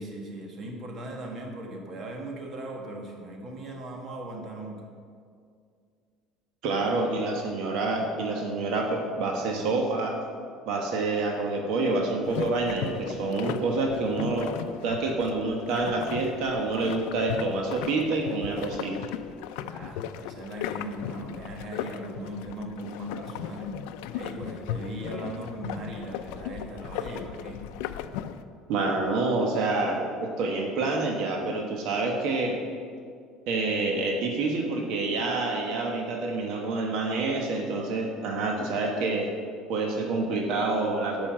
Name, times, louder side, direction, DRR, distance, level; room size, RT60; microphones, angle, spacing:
voice 1, 0.0-4.8 19.6-23.7 24.1-27.6, right 1 dB, 35° right, 1 dB, 1.5 m, -38 dB
voice 2, 6.6-10.2 10.7-14.5 14.8-18.9 28.7-32.6 33.5-39.3 39.7-41.3, right 3 dB, 60° right, 1 dB, 1.2 m, -27 dB
sound 1, 12.2-28.4, left 10 dB, 85° left, 0.5 m, -37 dB
10.5 x 5.6 x 7.5 m, 2.2 s
cardioid pair, 155°, 0 cm